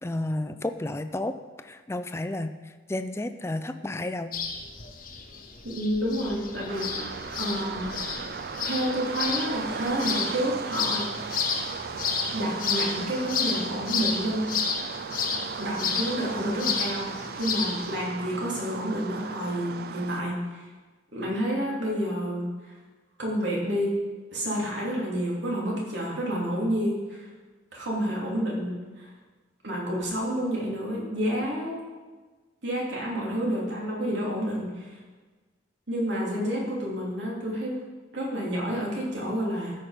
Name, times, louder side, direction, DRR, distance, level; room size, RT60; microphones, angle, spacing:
voice 1, 0.0-1.4 1.6-2.5 2.9-4.3, left 1 dB, 15° left, 9 dB, 0.4 m, -31 dB
sound 1, 4.3-17.9, left 6 dB, 50° left, 1.0 m, -32 dB
voice 2, 5.6-6.9 7.4-7.9 8.6-11.0 12.3-14.4 14.7-15.0 15.6-20.3 21.1-22.4 23.2-23.9 24.3-27.3 27.7-28.7 29.0-29.1 29.6-31.8 32.6-34.9 35.9-37.7 38.1-39.7, equal, 80° right, -4 dB, 3.1 m, -29 dB
sound 2, 6.7-20.2, right 5 dB, 55° right, 0.4 m, -36 dB
13.5 x 5.7 x 5.1 m, 1.3 s
head